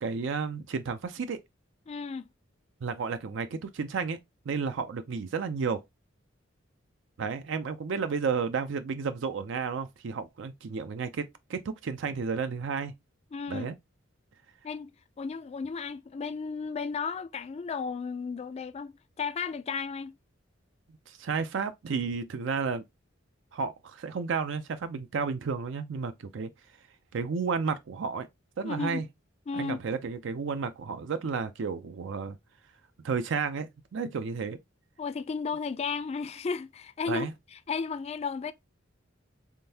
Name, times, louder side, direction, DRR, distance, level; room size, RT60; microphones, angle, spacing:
voice 1, 0.0-1.4 2.8-4.2 4.5-5.8 7.2-12.9 13.5-13.7 21.1-22.8 23.5-26.5 27.1-28.3 28.6-29.1 29.5-32.4 33.0-34.6 37.1-37.3, right 5 dB, 65° right, 0.4 m, -32 dB
voice 2, 1.9-2.3 13.3-13.7 14.6-20.1 28.6-29.0 29.5-29.8 35.0-38.5, left 5 dB, 35° left, 0.3 m, -34 dB
3.7 x 3.4 x 2.7 m
head